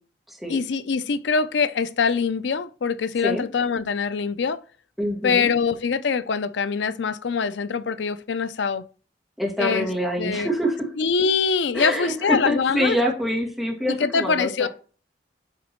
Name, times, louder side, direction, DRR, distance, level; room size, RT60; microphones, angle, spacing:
voice 1, 0.5-4.6 5.2-8.8 9.6-9.9 10.2-10.5 11.0-13.0 13.9-14.7, left 5 dB, 80° left, 0.5 m, -23 dB
voice 2, 5.0-5.5 9.4-10.9 11.7-14.7, equal, ahead, 2.1 m, -25 dB
8.3 x 3.7 x 4.5 m
head